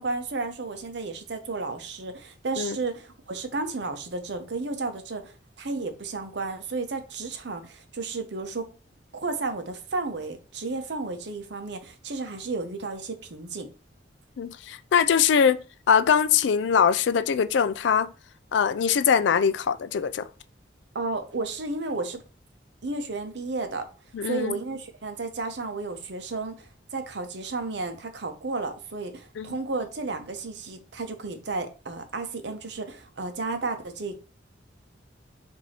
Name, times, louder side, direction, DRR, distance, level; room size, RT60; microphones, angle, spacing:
voice 1, 0.0-8.7 9.1-13.7 20.9-22.2 22.8-23.9 24.2-34.2, right 3 dB, 65° right, 0.8 m, -33 dB
voice 2, 14.4-15.6 15.9-18.1 18.5-20.3 24.1-24.5 29.4-29.5, left 7 dB, 75° left, 0.4 m, -22 dB
4.7 x 2.7 x 4.2 m
head